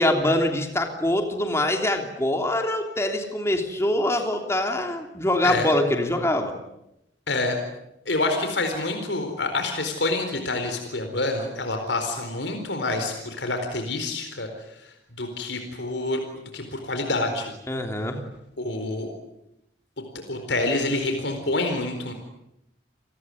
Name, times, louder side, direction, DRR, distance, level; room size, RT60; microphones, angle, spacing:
voice 1, 0.0-6.5 17.7-18.2, left 1 dB, 15° left, 4 dB, 3.1 m, -24 dB
voice 2, 8.1-14.5 15.2-17.5 18.6-19.1 20.3-22.1, left 2 dB, 80° left, 5 dB, 4.3 m, -27 dB
29.5 x 19.5 x 9.7 m, 0.85 s
head